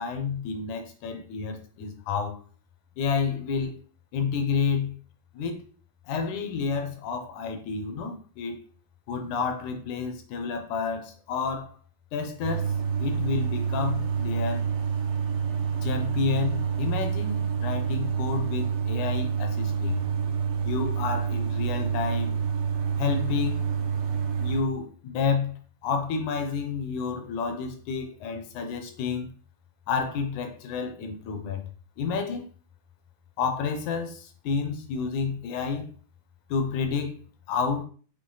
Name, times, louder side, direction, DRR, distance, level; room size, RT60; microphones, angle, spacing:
voice 1, 0.0-2.4 3.0-3.8 4.1-4.9 5.3-5.6 6.1-8.6 9.1-11.8 12.1-12.7 13.0-14.7 15.8-20.0 20.7-22.4 23.0-23.7 24.4-25.5 25.8-29.3 29.9-31.7 32.0-32.5 33.4-35.9 36.5-37.9, left 5 dB, 70° left, 2.1 m, -30 dB
sound 1, 12.4-24.6, right 6 dB, 80° right, 2.8 m, -28 dB
7.6 x 3.8 x 3.9 m
omnidirectional pair, 4.0 m